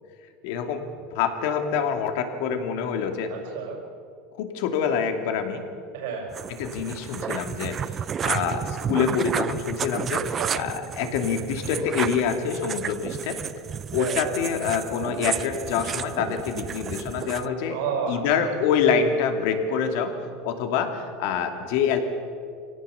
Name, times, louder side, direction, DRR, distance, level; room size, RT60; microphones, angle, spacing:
voice 1, 0.4-0.8 1.1-3.3 4.4-5.6 6.6-13.4 13.9-17.8 18.1-20.2 20.4-22.0, left 7 dB, 70° left, 6 dB, 2.6 m, -26 dB
voice 2, 3.3-3.8 5.9-6.3 8.3-8.6 10.3-10.6 14.0-14.4 17.7-18.2 18.8-19.0, right 6 dB, 75° right, 1 dB, 5.2 m, -31 dB
sound 1, 6.3-17.5, right 8 dB, 25° right, 0.5 m, -32 dB
25.0 x 17.5 x 7.0 m, 2.3 s
supercardioid pair, 155°, 0 cm